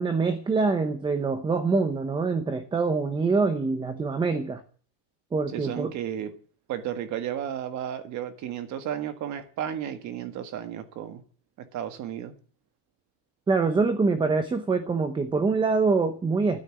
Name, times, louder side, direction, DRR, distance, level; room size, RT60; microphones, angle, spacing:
voice 1, 0.0-4.6 5.3-5.9 13.5-16.6, right 4 dB, 10° right, 0.7 m, -25 dB
voice 2, 5.5-6.3 6.7-11.2 11.6-12.3, right 10 dB, 35° right, 1.7 m, -33 dB
13.5 x 9.7 x 8.8 m
cardioid pair, 175°, 47 cm